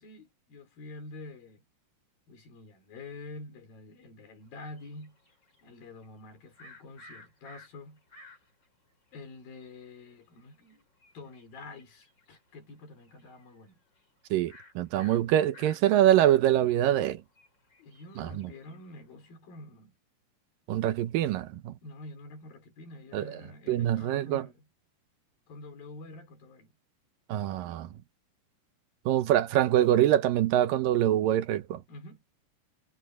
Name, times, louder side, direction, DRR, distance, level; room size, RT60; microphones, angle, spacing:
voice 1, 0.0-1.6 2.3-5.2 5.6-8.0 9.1-10.8 11.1-13.8 17.8-19.9 21.8-24.7 25.5-26.7 31.9-32.2, left 2 dB, 85° left, 6.3 m, -47 dB
sound 1, 4.5-8.7 9.1-9.2 9.4-12.5 12.8-13.7 14.0-14.1 14.5-19.2, left 2 dB, 30° left, 8.0 m, -55 dB
voice 2, 14.3-17.2 18.2-18.3 20.7-21.7 23.1-23.2 23.7-24.4 27.3-27.9 29.1-31.8, right 12 dB, 80° right, 2.7 m, -24 dB
omnidirectional pair, 4.0 m